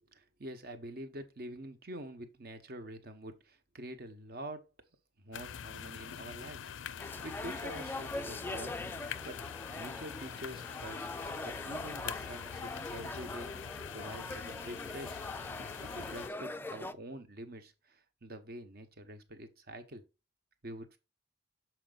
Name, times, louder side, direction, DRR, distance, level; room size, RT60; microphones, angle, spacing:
voice 1, 0.1-4.6 5.2-6.7 7.0-8.8 9.2-9.4 9.8-11.1 11.4-13.5 13.9-15.3 15.8-20.0 20.6-21.0, right 1 dB, 55° right, 1.0 m, -46 dB
sound 1, 5.3-16.3, left 8 dB, 85° left, 0.4 m, -44 dB
sound 2, 7.0-16.9, left 2 dB, 10° left, 0.3 m, -42 dB
7.1 x 4.5 x 3.9 m
head